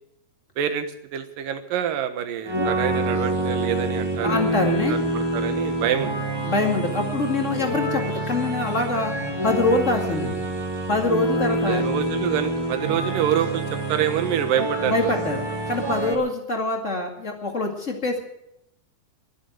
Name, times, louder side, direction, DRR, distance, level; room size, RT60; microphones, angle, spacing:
voice 1, 0.6-4.6 4.9-6.1 7.6-7.7 11.6-13.6 13.9-15.0, right 9 dB, 70° right, 8 dB, 2.8 m, -26 dB
sound 1, 2.4-16.1, right 1 dB, 10° right, 1.1 m, -27 dB
voice 2, 4.2-5.0 6.4-10.4 10.9-11.8 14.8-18.2, left 2 dB, 25° left, 2 dB, 1.7 m, -24 dB
22.5 x 7.6 x 7.9 m, 0.82 s
omnidirectional pair, 4.4 m